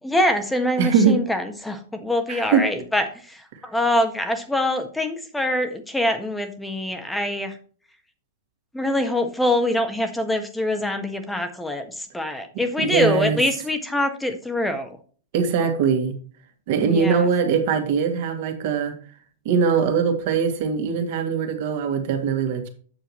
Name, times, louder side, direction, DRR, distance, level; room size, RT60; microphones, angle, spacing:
voice 1, 0.0-7.6 8.7-14.9 16.8-17.3, left 1 dB, 5° left, 7 dB, 1.5 m, -24 dB
voice 2, 0.8-1.2 2.3-2.6 12.8-13.4 15.3-16.1 16.7-18.9 19.4-22.7, right 6 dB, 55° right, 4 dB, 2.4 m, -21 dB
8.9 x 6.8 x 3.1 m, 0.43 s
hypercardioid pair, 115°, 0 cm